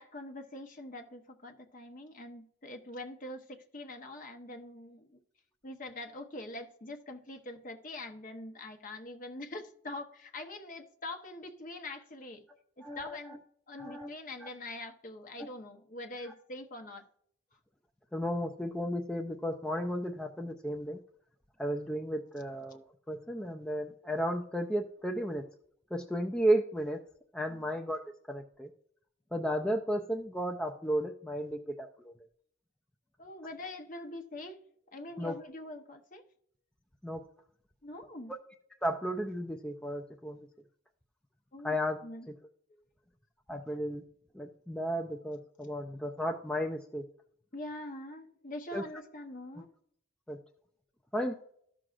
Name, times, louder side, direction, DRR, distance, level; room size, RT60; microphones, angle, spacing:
voice 1, 0.0-5.2 5.6-12.4 12.8-13.4 13.7-17.0 27.5-27.6 33.2-34.6 34.9-36.2 37.8-38.3 41.5-41.7 42.0-42.3 42.7-42.8 47.5-49.7, left 2 dB, 40° left, 4 dB, 0.9 m, -44 dB
voice 2, 12.8-13.4 13.8-14.1 14.4-14.5 15.4-15.5 16.2-16.3 18.1-21.0 21.6-25.4 25.9-27.0 27.3-28.7 29.3-32.1 35.2-35.3 37.0-37.2 38.8-40.5 41.6-42.0 42.3-42.4 43.5-44.0 44.3-47.0 48.7-48.8 50.3-50.4 51.1-51.4, equal, 5° left, 2 dB, 0.3 m, -34 dB
13.5 x 6.1 x 2.5 m, 0.64 s
head